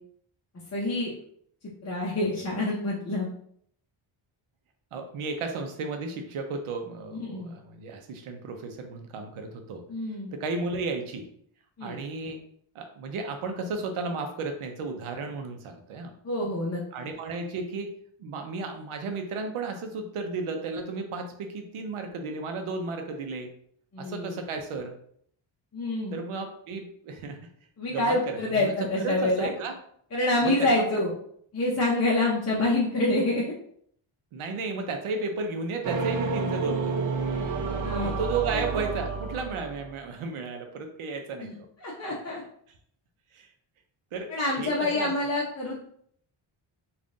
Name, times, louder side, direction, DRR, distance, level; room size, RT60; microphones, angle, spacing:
voice 1, 0.7-1.1 1.8-3.3 7.1-7.5 9.9-10.3 11.8-12.0 16.2-17.1 23.9-24.4 25.7-26.2 27.8-29.5 30.1-31.1 31.5-33.5 37.8-38.1 41.4-41.5 41.8-42.4 44.3-45.8, left 2 dB, 30° left, -5 dB, 0.7 m, -27 dB
voice 2, 4.9-9.8 10.3-11.3 11.8-12.4 12.7-16.1 16.9-17.9 18.2-23.5 24.0-25.0 26.1-27.5 27.9-28.7 29.0-29.8 30.4-31.0 34.3-37.2 38.0-41.5 43.3-43.5 44.1-44.3 44.6-45.1, right 4 dB, 80° right, 5 dB, 0.7 m, -33 dB
sound 1, 35.8-40.0, right 4 dB, 40° right, 0.4 m, -30 dB
3.6 x 2.5 x 3.7 m, 0.65 s
wide cardioid pair, 165°, 49 cm